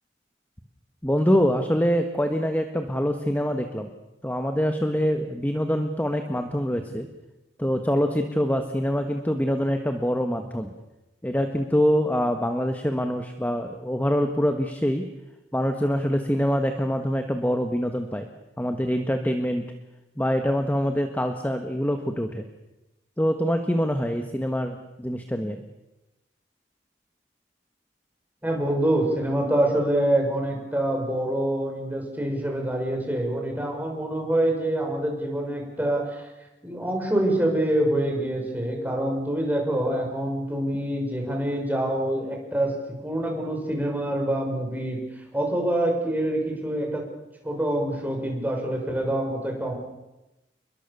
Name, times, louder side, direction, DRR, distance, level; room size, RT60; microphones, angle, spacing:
voice 1, 1.0-3.9 4.2-7.1 7.6-10.7 11.2-15.0 15.5-18.3 18.6-19.6 20.2-22.4 23.2-25.6, equal, 10° left, 6 dB, 1.5 m, -25 dB
voice 2, 28.4-36.3 36.6-45.0 45.3-47.0 47.4-49.7, right 1 dB, 10° right, 1 dB, 6.2 m, -26 dB
29.0 x 22.5 x 6.9 m, 0.98 s
head